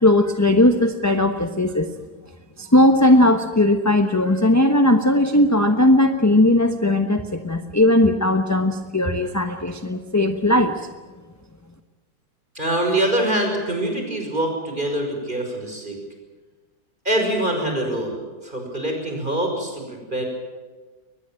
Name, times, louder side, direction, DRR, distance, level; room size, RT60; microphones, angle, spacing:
voice 1, 0.0-1.9 2.6-10.9, left 1 dB, 10° left, 7 dB, 0.9 m, -18 dB
voice 2, 12.5-16.0 17.0-20.2, right 1 dB, 30° right, 3 dB, 6.1 m, -24 dB
22.5 x 20.0 x 9.0 m, 1.4 s
omnidirectional pair, 1.7 m